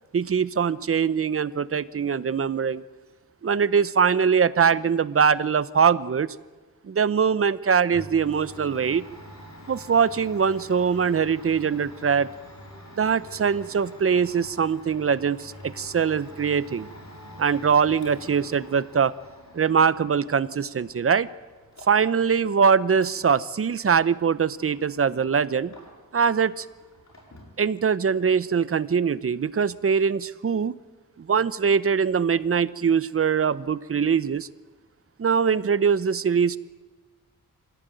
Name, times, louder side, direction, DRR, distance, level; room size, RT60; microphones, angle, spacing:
voice 1, 0.1-2.8 3.4-6.3 6.8-9.0 9.7-12.3 13.0-16.9 17.4-19.1 19.5-21.3 21.9-25.7 26.1-26.7 27.6-30.7 31.2-34.5 35.2-36.6, right 6 dB, 40° right, 17 dB, 0.7 m, -22 dB
Domestic sounds home sounds, 7.9-26.3 26.5-27.6, equal, 50° left, 7.3 m, -47 dB
25.5 x 17.0 x 9.1 m, 1.3 s
wide cardioid pair, 135°, 34 cm